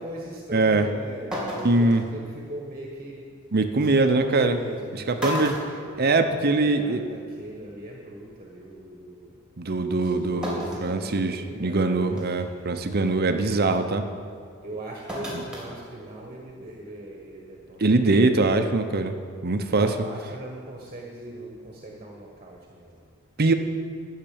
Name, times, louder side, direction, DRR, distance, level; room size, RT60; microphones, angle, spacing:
voice 1, 0.0-3.3 4.0-6.1 6.4-9.3 10.0-12.7 14.6-18.0 19.7-23.0, right 1 dB, 30° right, -1 dB, 1.5 m, -40 dB
voice 2, 0.5-0.9 1.6-2.0 3.5-4.6 4.9-5.6 6.0-7.0 9.6-14.0 17.8-19.1 19.4-20.0 23.4-23.5, right 2 dB, 50° right, 7 dB, 0.8 m, -22 dB
sound 1, 0.8-0.9 1.3-2.0 3.6-3.7 4.6-4.8 5.2-6.6 6.9-7.0 8.2-8.3 10.4-10.9 11.5-11.6 12.2-12.5 15.1-15.7 16.0-16.1, equal, 5° right, 2.6 m, -33 dB
12.0 x 6.7 x 8.7 m, 2.1 s
head